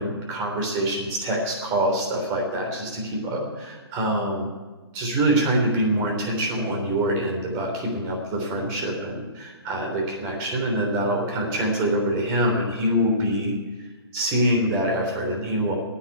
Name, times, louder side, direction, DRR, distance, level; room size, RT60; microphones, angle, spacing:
voice 1, 0.0-4.5 4.9-13.5 14.1-15.8, right 1 dB, 25° right, 1 dB, 3.5 m, -25 dB
9.4 x 9.1 x 9.9 m, 1.3 s
hypercardioid pair, 140°, 14 cm